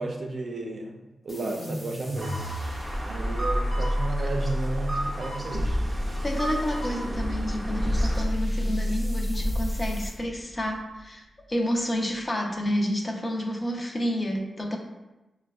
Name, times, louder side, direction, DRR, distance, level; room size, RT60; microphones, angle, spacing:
voice 1, 0.0-2.4 3.0-5.8, right 2 dB, 60° right, 1 dB, 0.5 m, -33 dB
sound 1, 1.3-10.2, equal, 65° left, 1.0 m, -31 dB
sound 2, 2.2-8.2, right 1 dB, 15° right, 0.6 m, -35 dB
sound 3, 5.5-11.0, equal, 85° left, 0.6 m, -32 dB
voice 2, 6.2-14.8, equal, 30° left, 1 dB, 0.5 m, -30 dB
5.1 x 2.2 x 2.3 m, 1.0 s
cardioid pair, 70°, 0 cm